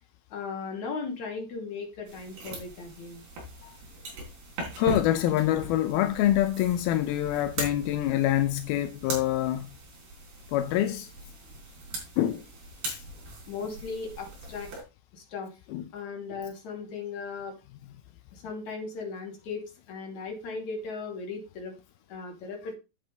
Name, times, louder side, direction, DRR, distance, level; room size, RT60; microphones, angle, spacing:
voice 1, 0.3-3.3 13.5-14.7 15.1-15.5 15.9-17.5 18.3-21.7 22.1-22.8, left 4 dB, 45° left, 3.6 m, -37 dB
sound 1, 2.1-14.8, right 2 dB, 60° right, 5.7 m, -40 dB
voice 2, 4.8-9.7 10.5-11.1 12.2-12.4 12.9-13.0 15.7-15.9, left 13 dB, 80° left, 2.2 m, -26 dB
10.0 x 8.2 x 3.4 m
omnidirectional pair, 5.1 m